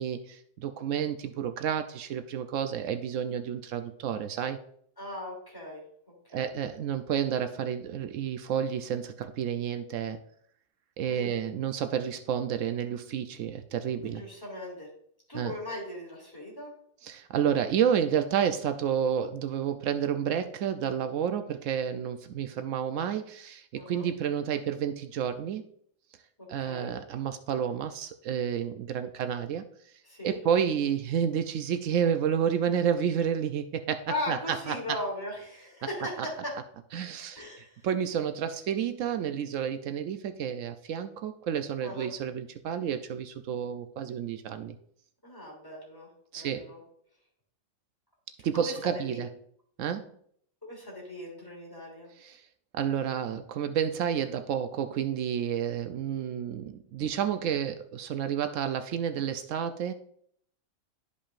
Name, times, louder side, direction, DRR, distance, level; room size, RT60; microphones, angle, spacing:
voice 1, 0.0-4.6 6.3-10.2 11.0-14.2 15.3-15.5 17.0-25.6 26.5-29.6 30.2-34.8 36.9-44.8 46.3-46.7 48.4-49.3 49.8-50.1 52.2-52.4 52.7-59.9, right 8 dB, 80° right, 9 dB, 1.0 m, -30 dB
voice 2, 5.0-5.8 6.3-6.5 11.0-11.3 14.0-14.9 15.3-16.7 23.7-24.0 26.6-26.9 30.0-30.4 34.1-36.5 37.4-37.8 41.8-42.1 45.2-46.8 48.5-49.2 50.6-52.1, left 1 dB, 15° left, -4 dB, 2.9 m, -38 dB
12.0 x 5.2 x 2.5 m, 0.65 s
omnidirectional pair, 1.3 m